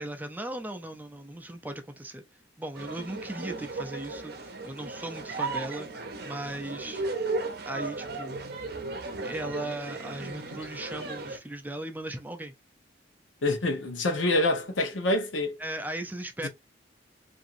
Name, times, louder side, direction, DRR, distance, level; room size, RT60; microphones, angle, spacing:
voice 1, 0.0-2.2 2.6-7.0 7.6-8.4 9.2-12.5 15.6-16.5, right 1 dB, 10° right, 0.4 m, -37 dB
sound 1, 2.7-11.4, right 3 dB, 55° right, 0.6 m, -36 dB
voice 2, 13.4-15.6 16.4-16.5, left 2 dB, 85° left, 0.8 m, -26 dB
2.8 x 2.5 x 2.5 m
head